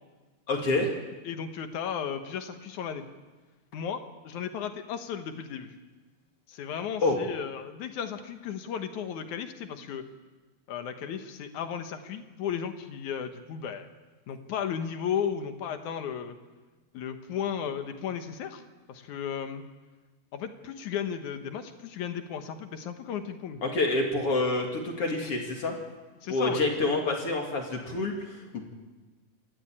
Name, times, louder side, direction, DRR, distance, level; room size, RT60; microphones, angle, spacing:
voice 1, 0.5-0.9 7.0-7.2 23.6-25.8 26.3-28.4, left 2 dB, 50° left, 1 dB, 3.0 m, -27 dB
voice 2, 1.2-3.0 3.7-5.7 6.5-10.1 10.7-13.9 14.3-16.4 16.9-18.6 18.9-19.6 20.3-23.6 26.2-26.6, left 8 dB, 80° left, 7 dB, 2.7 m, -34 dB
28.5 x 13.5 x 8.8 m, 1.2 s
omnidirectional pair, 3.4 m